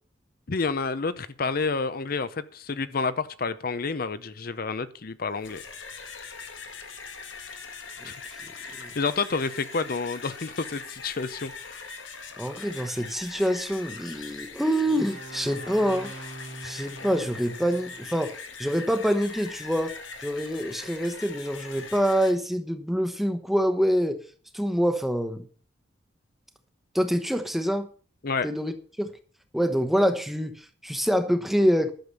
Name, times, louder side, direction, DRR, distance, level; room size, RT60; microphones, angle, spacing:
voice 1, 0.5-5.6 8.0-8.2 9.0-11.8 28.2-28.5, left 4 dB, 50° left, 0.7 m, -29 dB
sound 1, 5.3-22.3, left 5 dB, 85° left, 1.7 m, -41 dB
voice 2, 12.4-16.1 16.6-19.9 20.2-24.2 24.5-25.5 26.9-27.9 28.4-29.1 29.5-31.9, equal, ahead, 1.0 m, -26 dB
sound 2, 14.8-18.4, right 2 dB, 70° right, 2.8 m, -44 dB
11.5 x 6.9 x 6.9 m
head